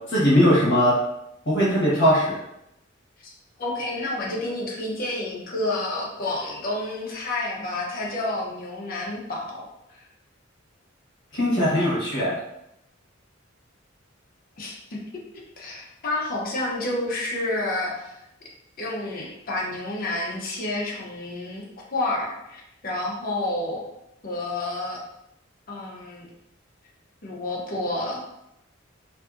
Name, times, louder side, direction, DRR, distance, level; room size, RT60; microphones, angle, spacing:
voice 1, 0.1-0.9 1.5-2.4 11.3-12.4, equal, 65° left, -7 dB, 0.9 m, -20 dB
voice 2, 3.2-9.6 14.6-15.0 15.6-18.3 18.8-21.6 21.9-23.8 24.2-25.0 25.7-26.3 27.2-28.2, left 2 dB, 45° left, -3 dB, 0.6 m, -29 dB
2.6 x 2.5 x 2.4 m, 0.83 s
head